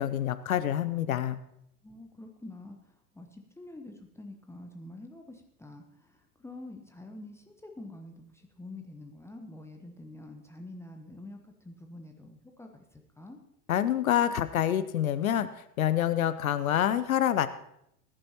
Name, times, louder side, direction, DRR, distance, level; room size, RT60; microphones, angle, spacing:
voice 1, 0.0-1.4 13.7-17.5, left 11 dB, 65° left, 13 dB, 0.8 m, -27 dB
voice 2, 1.8-13.4, left 2 dB, 5° left, 3 dB, 1.1 m, -47 dB
20.5 x 10.0 x 3.0 m, 0.77 s
figure-of-eight pair, 85°, 45 cm